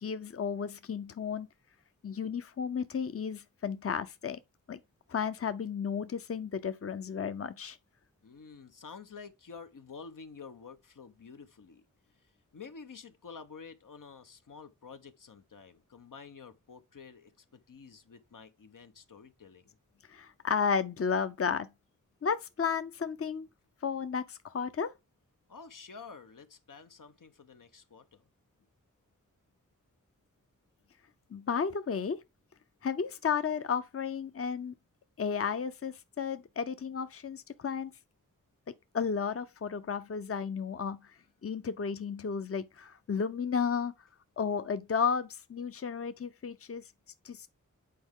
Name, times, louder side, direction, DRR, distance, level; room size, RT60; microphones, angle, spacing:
voice 1, 0.0-1.5 2.0-4.4 4.7-4.8 5.1-7.8 20.1-21.7 22.2-23.5 23.8-24.9 31.3-32.2 32.8-34.7 35.2-37.9 38.9-41.0 41.4-43.9 44.4-46.8 47.2-47.5, left 6 dB, 45° left, 0.6 m, -33 dB
voice 2, 8.2-11.8 12.2-12.3 12.5-19.8 25.5-28.2, left 5 dB, 85° left, 0.9 m, -50 dB
8.6 x 4.6 x 3.6 m
wide cardioid pair, 75°, 32 cm